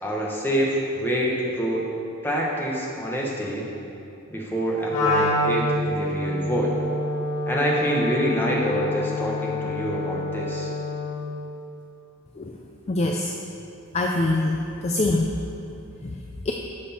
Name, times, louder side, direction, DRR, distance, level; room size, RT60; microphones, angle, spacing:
voice 1, 0.0-1.9 2.2-3.7 4.3-6.8 7.5-10.7, equal, 10° left, -3 dB, 1.2 m, -26 dB
Wind instrument woodwind instrument, 4.9-11.3, left 1 dB, 85° left, 2.2 m, -26 dB
voice 2, 12.9-13.3 13.9-15.3 16.5-16.6, left 2 dB, 30° left, 1 dB, 0.4 m, -23 dB
11.0 x 6.4 x 4.3 m, 2.8 s
head